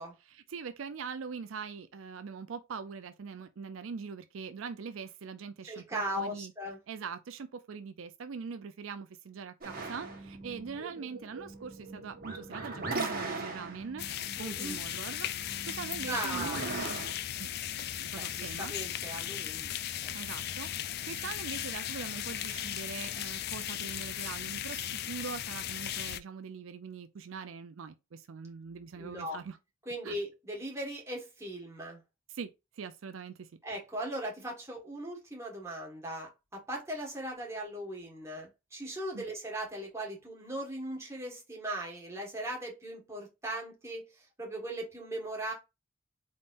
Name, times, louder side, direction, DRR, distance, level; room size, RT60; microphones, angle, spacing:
voice 1, 0.2-6.5 6.9-14.1 14.4-15.3 15.7-17.1 17.4-17.5 17.7-18.7 20.1-29.6 30.0-30.1 32.3-33.5 39.1-39.2, right 5 dB, 75° right, 0.4 m, -42 dB
voice 2, 5.6-6.8 14.4-14.8 16.1-16.6 18.1-19.8 20.0-20.2 29.0-29.4 29.8-32.0 33.6-45.5, right 1 dB, 15° right, 1.6 m, -39 dB
sound 1, 9.6-17.1, right 3 dB, 45° right, 1.3 m, -40 dB
sound 2, 14.0-26.2, left 11 dB, 50° left, 0.3 m, -37 dB
4.1 x 3.6 x 2.6 m
head